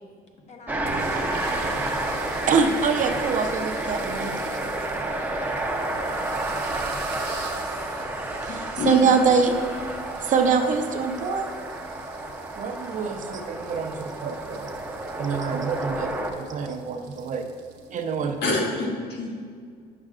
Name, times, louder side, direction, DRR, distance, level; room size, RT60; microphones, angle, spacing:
voice 1, 0.5-1.9 5.0-5.3 14.2-14.3, left 3 dB, 40° left, 2 dB, 1.1 m, -46 dB
sound 1, 0.7-16.3, right 2 dB, 10° right, 0.6 m, -30 dB
sound 2, 0.9-18.7, right 5 dB, 80° right, 0.9 m, -44 dB
voice 2, 2.5-4.4 8.4-9.6 10.2-11.5 12.6-14.7 15.2-16.1 16.4-17.4 17.9-18.3, right 5 dB, 50° right, 5 dB, 0.6 m, -25 dB
voice 3, 7.1-7.9 8.5-9.1 18.2-19.3, left 2 dB, 75° left, -1 dB, 1.4 m, -28 dB
9.5 x 6.5 x 2.4 m, 2.1 s
cardioid pair, 110°, 17 cm